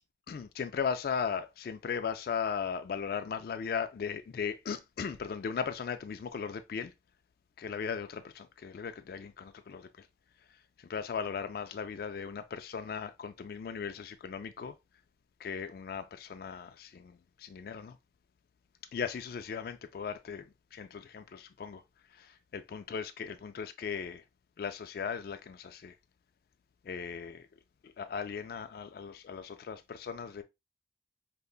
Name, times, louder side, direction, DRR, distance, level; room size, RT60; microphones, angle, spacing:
voice 1, 0.3-6.9 7.6-10.1 10.5-14.8 15.4-18.0 18.9-21.8 22.1-24.2 24.6-26.0 26.8-27.5 27.8-30.4, left 6 dB, 55° left, 0.3 m, -37 dB
5.1 x 2.2 x 2.3 m
head